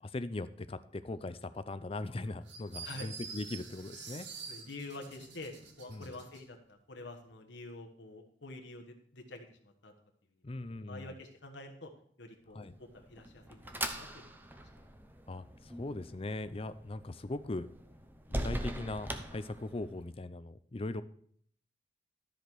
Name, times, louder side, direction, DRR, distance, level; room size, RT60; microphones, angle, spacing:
voice 1, 0.0-4.3 5.9-6.2 10.4-11.1 12.5-12.7 15.3-17.7 18.3-21.0, left 2 dB, 30° left, 13 dB, 0.5 m, -40 dB
sound 1, 2.5-6.4, right 5 dB, 75° right, 1.7 m, -47 dB
voice 2, 4.5-9.9 10.9-11.9 12.2-14.4, left 2 dB, 75° left, 4 dB, 1.4 m, -47 dB
sound 2, 12.7-20.1, right 1 dB, 10° right, 0.8 m, -42 dB
13.0 x 5.1 x 6.1 m, 0.62 s
head